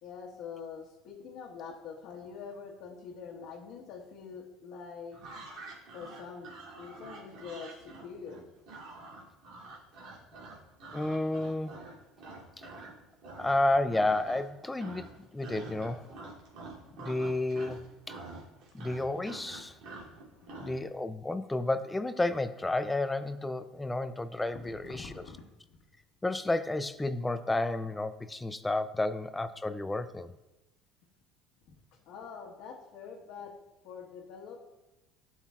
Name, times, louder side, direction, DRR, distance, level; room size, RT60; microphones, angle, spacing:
voice 1, 0.0-5.2 5.9-8.4 16.9-17.0 20.3-20.8 24.6-25.4 32.1-33.5 33.8-34.6, left 6 dB, 70° left, -3 dB, 1.2 m, -45 dB
sound 1, 5.1-12.9 13.2-13.7 13.9-14.5 14.8-20.8, right 3 dB, 65° right, 2.6 m, -47 dB
voice 2, 10.9-11.8 12.6-12.7 13.4-16.1 17.0-17.8 18.1-18.2 18.7-19.8 20.6-25.2 26.2-30.3, left 2 dB, 10° left, 12 dB, 0.4 m, -31 dB
12.0 x 5.7 x 2.4 m, 1.0 s
supercardioid pair, 105°, 0 cm